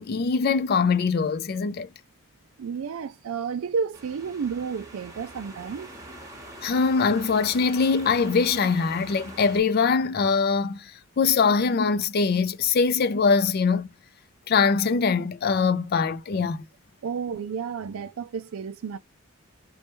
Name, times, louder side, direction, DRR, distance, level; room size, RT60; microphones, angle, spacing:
voice 1, 0.0-1.9 6.6-13.9 14.5-16.6, left 5 dB, 45° left, 0.4 m, -23 dB
voice 2, 2.6-5.9 17.0-19.0, right 6 dB, 80° right, 0.4 m, -31 dB
sound 1, 3.9-9.6, right 1 dB, 15° right, 0.9 m, -43 dB
3.1 x 2.2 x 2.9 m
head